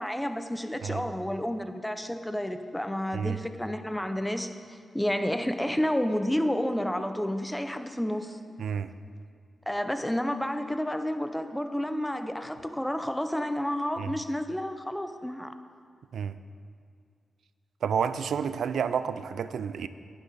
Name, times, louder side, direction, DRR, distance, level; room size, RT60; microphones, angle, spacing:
voice 1, 0.0-8.4 9.7-15.5, equal, 5° left, 8 dB, 0.7 m, -30 dB
voice 2, 8.6-8.9 14.0-14.1 16.1-16.4 17.8-19.9, right 7 dB, 80° right, 13 dB, 0.4 m, -30 dB
11.0 x 9.7 x 4.0 m, 2.2 s
cardioid pair, 60°, 0 cm